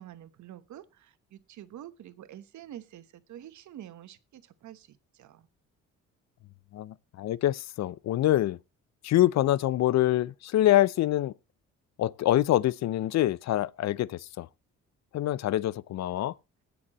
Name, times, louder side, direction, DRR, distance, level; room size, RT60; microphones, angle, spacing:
voice 1, 0.0-5.5, right 12 dB, 70° right, 1.1 m, -47 dB
voice 2, 6.7-8.6 9.0-11.3 12.0-14.5 15.1-16.3, left 13 dB, 60° left, 0.5 m, -25 dB
21.0 x 7.0 x 3.0 m
cardioid pair, 90°, 30 cm